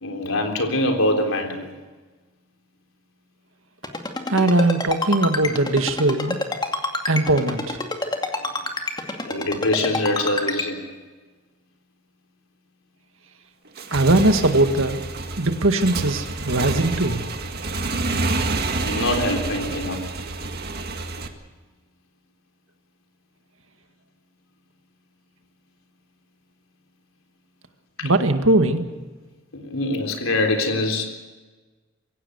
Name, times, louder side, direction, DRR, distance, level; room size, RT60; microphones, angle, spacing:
voice 1, 0.0-1.7 9.3-10.8 18.8-20.0 28.0-28.1 29.5-31.2, left 1 dB, 85° left, 4 dB, 3.8 m, -24 dB
Ringtone, 3.8-10.6, left 2 dB, 20° left, 2.3 m, -26 dB
voice 2, 4.3-6.4 7.1-7.8 13.9-15.0 15.4-17.2 28.0-28.8, right 2 dB, 75° right, 7 dB, 1.9 m, -20 dB
Motorcycle / Engine, 13.7-21.3, right 3 dB, 50° right, 1.9 m, -28 dB
24.5 x 16.5 x 8.2 m, 1.3 s
head